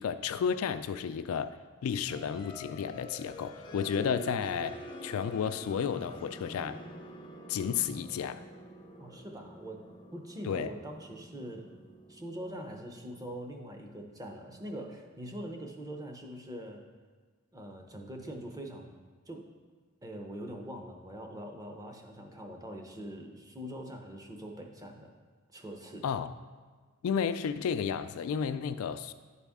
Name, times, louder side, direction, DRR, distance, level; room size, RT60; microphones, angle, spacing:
voice 1, 0.0-1.6 1.8-6.8 7.5-8.4 10.4-10.7 26.0-26.3 27.0-29.1, left 7 dB, 70° left, 11 dB, 0.3 m, -32 dB
sound 1, 2.1-14.6, equal, 20° left, 0.6 m, -47 dB
voice 2, 9.0-9.8 10.1-11.7 12.1-16.8 17.5-18.9 19.3-19.5 20.0-25.1 25.5-26.0, equal, 15° right, 2 dB, 0.7 m, -43 dB
11.0 x 4.1 x 3.6 m, 1.5 s
head